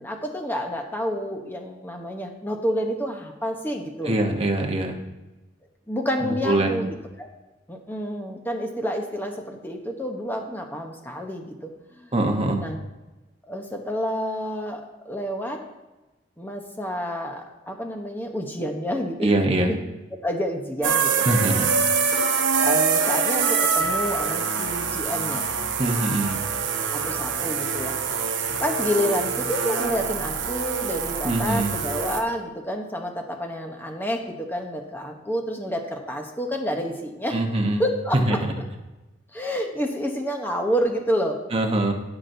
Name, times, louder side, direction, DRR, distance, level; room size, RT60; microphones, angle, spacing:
voice 1, 0.0-4.2 5.9-7.3 7.7-12.1 12.6-12.8 13.5-15.6 16.4-19.8 20.2-21.2 22.6-25.5 26.9-28.0 28.6-37.4 37.8-38.4 39.3-41.4, equal, 10° left, 3 dB, 0.9 m, -29 dB
voice 2, 4.0-5.0 6.2-6.9 12.1-12.6 19.2-19.7 21.3-21.7 25.8-26.4 31.2-31.7 37.3-37.8 38.1-38.4 41.5-41.9, right 1 dB, 30° right, 2 dB, 1.0 m, -23 dB
sound 1, 20.8-32.2, right 5 dB, 80° right, 0.9 m, -25 dB
16.5 x 5.9 x 2.7 m, 1.1 s
head